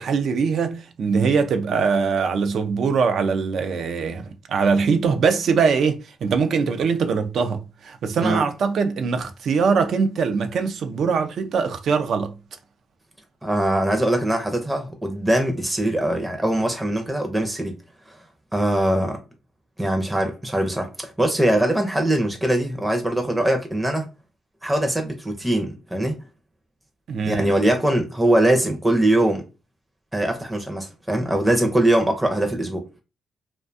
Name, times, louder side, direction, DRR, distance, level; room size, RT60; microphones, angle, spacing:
voice 1, 0.0-12.3 27.1-27.6, right 5 dB, 65° right, 0.4 m, -22 dB
voice 2, 13.4-17.8 18.1-18.2 18.5-19.2 19.8-24.0 24.6-26.2 27.3-29.4 30.1-32.9, right 1 dB, 10° right, 0.5 m, -22 dB
2.5 x 2.2 x 2.5 m
cardioid pair, 85°, 0 cm